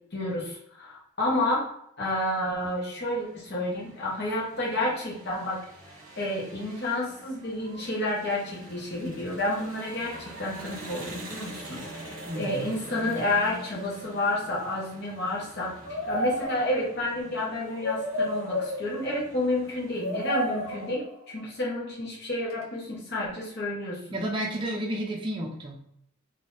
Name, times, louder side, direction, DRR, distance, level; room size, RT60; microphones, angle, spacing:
voice 1, 0.1-1.7 2.0-5.7 6.2-15.7 16.1-24.2, left 1 dB, 50° left, -4 dB, 1.0 m, -30 dB
sound 1, 2.6-20.9, right 1 dB, 40° right, 1.3 m, -46 dB
voice 2, 12.3-12.7 24.1-25.9, right 1 dB, 25° right, -2 dB, 0.5 m, -32 dB
sound 2, 15.9-17.0 17.6-19.3 19.9-21.2 22.5-22.6, equal, 80° left, 0.9 m, -31 dB
3.9 x 2.6 x 2.5 m, 0.74 s
head